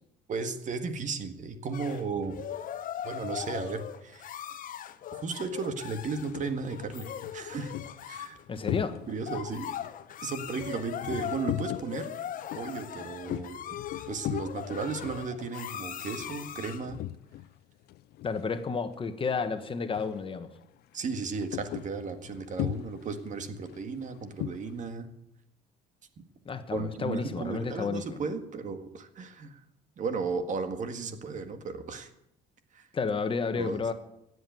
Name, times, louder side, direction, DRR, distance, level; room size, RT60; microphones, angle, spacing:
voice 1, 0.3-2.4 3.0-4.3 5.1-7.1 7.3-7.7 8.1-8.4 9.1-9.7 10.2-12.1 12.6-13.6 14.1-17.0 20.9-25.1 26.7-29.6 30.0-32.1 32.7-32.9 33.6-33.8, right 4 dB, 50° right, 9 dB, 1.8 m, -35 dB
sound 1, 1.7-16.9, left 10 dB, 55° left, 1.0 m, -40 dB
sound 2, 6.2-6.6 7.1-9.4 9.7-17.6 17.8-18.9 19.2-19.5 19.9-20.3 20.6-24.8, left 14 dB, 70° left, 0.5 m, -39 dB
voice 2, 8.5-9.0 18.2-20.5 26.4-28.2 32.9-33.9, left 5 dB, 30° left, 9 dB, 1.3 m, -31 dB
16.0 x 8.1 x 9.3 m, 0.78 s
cardioid pair, 110°, 17 cm